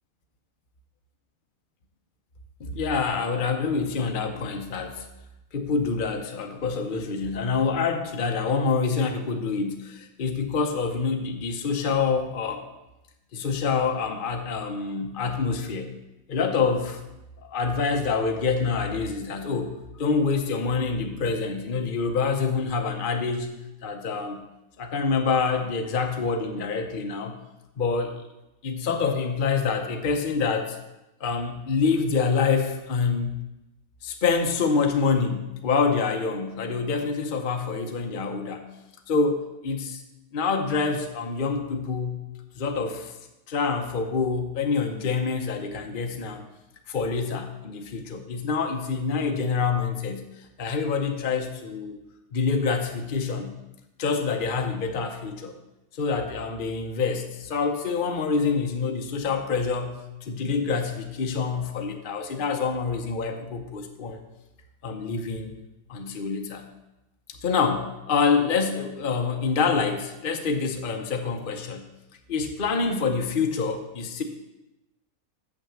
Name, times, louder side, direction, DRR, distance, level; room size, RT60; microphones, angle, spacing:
voice 1, 2.6-5.1 5.5-12.6 13.3-15.9 16.3-17.0 17.4-23.5 23.8-24.4 24.8-27.4 27.8-28.2 28.6-30.8 31.2-33.4 34.0-38.6 39.1-40.0 40.3-42.2 42.6-43.1 43.5-46.4 46.9-52.0 52.3-53.5 54.0-55.5 55.9-64.2 64.8-65.6 65.9-66.7 67.4-71.8 72.3-74.2, left 5 dB, 45° left, 4 dB, 0.8 m, -26 dB
7.1 x 6.2 x 6.9 m, 0.94 s
omnidirectional pair, 1.6 m